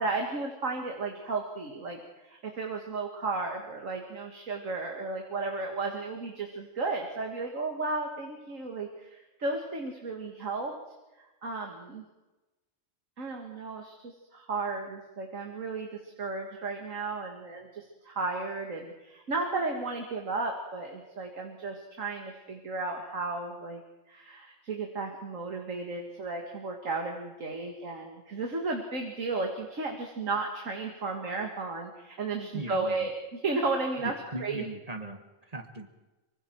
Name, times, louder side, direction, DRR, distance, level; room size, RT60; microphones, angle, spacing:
voice 1, 0.0-10.7 11.4-12.1 13.2-23.8 24.1-34.1 34.4-34.6, right 3 dB, 85° right, 2 dB, 2.3 m, -34 dB
voice 2, 32.5-33.1 34.0-35.9, right 1 dB, 30° right, 6 dB, 1.8 m, -39 dB
24.5 x 24.0 x 4.7 m, 1.1 s
omnidirectional pair, 1.3 m